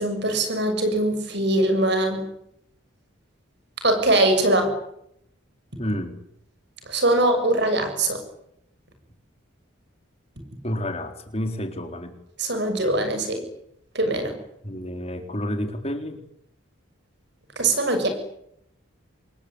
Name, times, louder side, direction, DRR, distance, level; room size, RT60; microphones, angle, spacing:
voice 1, 0.0-2.2 3.8-4.8 6.9-8.2 12.4-13.4 13.9-14.4 17.5-18.1, right 1 dB, 55° right, 7 dB, 6.7 m, -22 dB
voice 2, 5.8-6.2 10.6-12.2 14.6-16.2, left 1 dB, 30° left, 6 dB, 4.0 m, -30 dB
27.0 x 21.0 x 9.9 m, 0.75 s
head